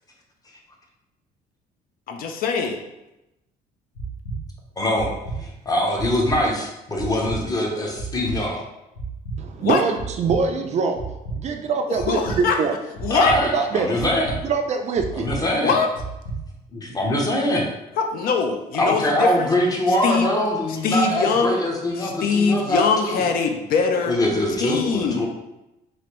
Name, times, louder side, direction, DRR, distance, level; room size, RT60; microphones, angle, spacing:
voice 1, 2.1-2.8 9.6-9.8 12.1-12.6 13.0-13.5 15.6-15.9 18.0-19.5 20.0-20.3 20.8-21.6 22.0-24.2 24.6-25.3, left 5 dB, 60° left, 4 dB, 0.4 m, -22 dB
sound 1, 4.0-4.4 5.0-5.4 6.0-6.4 7.0-7.4 8.0-8.4 9.0-9.4 10.0-10.4 11.0-11.4 12.0-12.4 13.0-13.4 14.0-14.4 15.0-15.4 16.0-16.4, right 3 dB, 80° left, 1.0 m, -31 dB
voice 2, 4.8-5.1 5.4-8.6 13.1-14.3 15.2-15.8 16.7-17.6 18.8-23.2 24.0-25.3, left 1 dB, 20° left, 0 dB, 0.7 m, -23 dB
voice 3, 9.4-11.0 11.4-12.7 13.5-13.9 14.4-15.3, right 5 dB, 40° right, 4 dB, 0.4 m, -23 dB
3.2 x 2.5 x 2.9 m, 0.95 s
cardioid pair, 110°, 17 cm